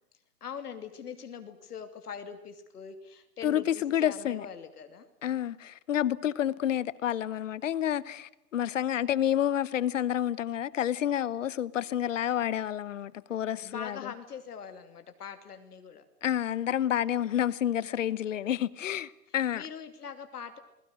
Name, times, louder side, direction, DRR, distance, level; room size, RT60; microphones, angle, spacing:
voice 1, 0.4-3.7 4.0-5.1 13.4-16.0 19.5-20.6, left 7 dB, 65° left, 2.7 m, -42 dB
voice 2, 3.4-4.5 5.2-14.1 16.2-19.6, left 10 dB, 50° left, 1.0 m, -29 dB
29.0 x 21.0 x 6.4 m
hypercardioid pair, 145°, 50 cm